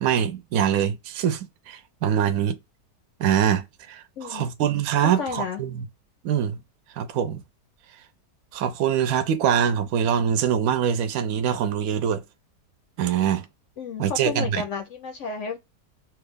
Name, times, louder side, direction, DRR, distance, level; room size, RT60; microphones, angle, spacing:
voice 1, 0.0-2.6 3.2-4.0 4.3-5.8 6.2-6.6 7.0-7.4 8.5-12.2 13.0-13.5 14.0-14.6, right 8 dB, 70° right, 1.0 m, -24 dB
voice 2, 4.2-4.5 5.0-5.6 13.8-15.6, left 5 dB, 65° left, 0.8 m, -32 dB
3.1 x 2.4 x 3.4 m
omnidirectional pair, 1.7 m